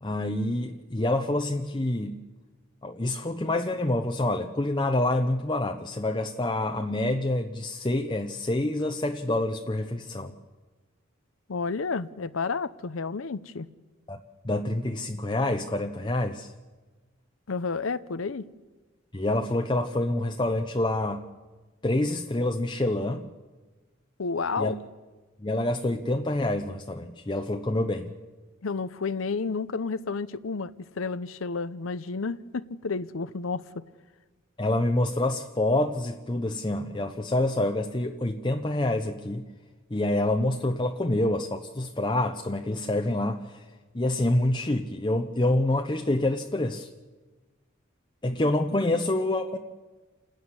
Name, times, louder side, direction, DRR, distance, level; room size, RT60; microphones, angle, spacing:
voice 1, 0.0-2.2 2.8-10.4 14.1-14.2 14.4-16.5 19.1-21.2 21.8-23.3 24.6-24.7 25.4-28.1 34.6-39.4 39.9-43.6 43.9-46.9 48.2-49.6, left 1 dB, 25° left, 0.8 m, -27 dB
voice 2, 11.5-13.7 17.5-18.5 24.2-24.8 28.6-33.8 48.8-49.0, left 4 dB, 85° left, 0.7 m, -31 dB
28.0 x 13.0 x 9.8 m
head